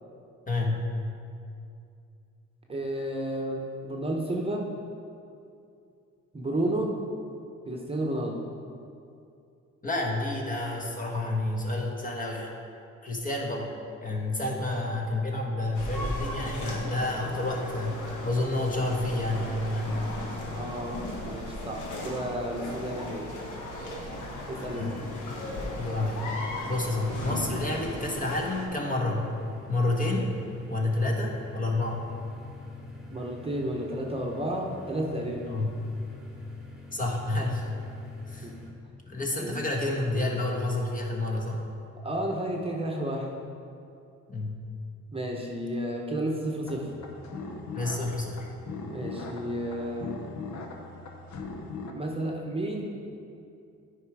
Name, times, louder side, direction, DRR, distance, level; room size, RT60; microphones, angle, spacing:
voice 1, 0.5-0.9 9.8-12.5 13.0-13.7 14.0-20.0 24.7-25.0 25.3-25.4 25.8-26.3 26.7-29.3 29.7-30.3 30.7-32.0 35.5-35.8 36.9-37.7 38.3-38.5 39.1-41.6 44.3-44.6 47.7-48.5, left 2 dB, 25° left, 0 dB, 1.3 m, -29 dB
voice 2, 2.7-4.7 6.3-6.9 7.7-8.4 20.5-23.3 24.5-24.9 33.1-35.5 38.4-38.7 39.4-39.6 42.0-43.3 45.1-46.9 48.9-50.2 51.9-52.9, right 1 dB, 20° right, -1 dB, 1.0 m, -32 dB
sound 1, 15.7-28.7, left 1 dB, 85° left, 1.5 m, -37 dB
sound 2, 23.9-38.7, left 3 dB, ahead, 1.5 m, -47 dB
sound 3, 46.7-51.9, left 3 dB, 65° left, 0.9 m, -40 dB
9.7 x 5.0 x 4.8 m, 2.5 s
cardioid pair, 90°, 30 cm